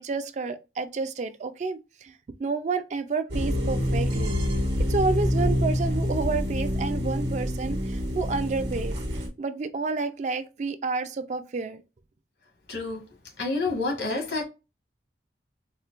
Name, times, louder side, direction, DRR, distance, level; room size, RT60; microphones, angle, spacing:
voice 1, 0.0-4.4 4.9-11.8, right 4 dB, 40° right, 0.3 m, -30 dB
sound 1, 3.3-9.3, left 1 dB, 80° right, 1.0 m, -26 dB
voice 2, 12.7-13.1 13.4-14.4, left 3 dB, 80° left, 1.4 m, -28 dB
4.3 x 2.1 x 2.4 m
head